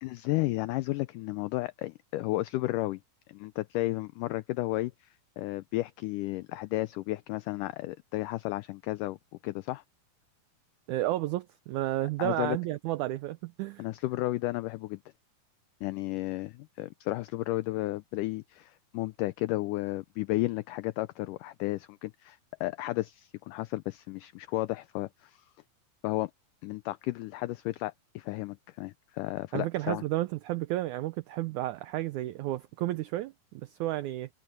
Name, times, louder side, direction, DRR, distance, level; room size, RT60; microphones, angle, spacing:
voice 1, 0.0-3.0 3.3-5.1 5.4-9.2 9.4-9.8 12.2-12.6 13.8-15.0 15.8-25.5 26.0-26.3 26.6-30.0, left 18 dB, 85° left, 1.9 m, -33 dB
voice 2, 10.9-13.8 29.5-34.3, right 16 dB, 85° right, 1.7 m, -32 dB
omnidirectional pair, 4.2 m